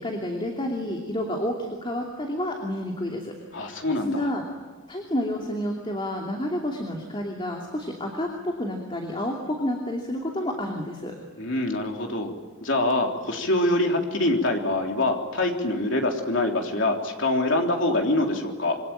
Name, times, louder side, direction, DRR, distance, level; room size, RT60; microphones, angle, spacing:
voice 1, 0.0-3.7 4.1-4.4 4.9-11.1, left 1 dB, 25° left, 1 dB, 2.8 m, -30 dB
voice 2, 3.5-4.3 11.4-12.3 12.6-18.8, left 2 dB, 60° left, 2 dB, 3.7 m, -25 dB
27.0 x 24.5 x 9.1 m, 1.3 s
head